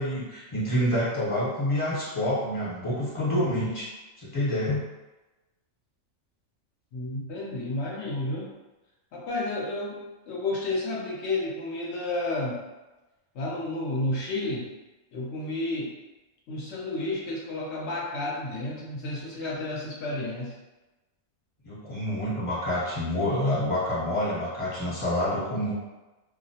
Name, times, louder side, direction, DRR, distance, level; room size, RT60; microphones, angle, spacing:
voice 1, 0.0-3.9 4.2-4.8 21.6-25.7, left 1 dB, 25° left, -9 dB, 1.0 m, -27 dB
voice 2, 6.9-8.5 9.1-12.6 13.3-14.7 15.1-15.9 16.5-20.5, left 2 dB, 65° left, -4 dB, 0.8 m, -31 dB
2.4 x 2.0 x 2.7 m, 1.1 s
omnidirectional pair, 1.4 m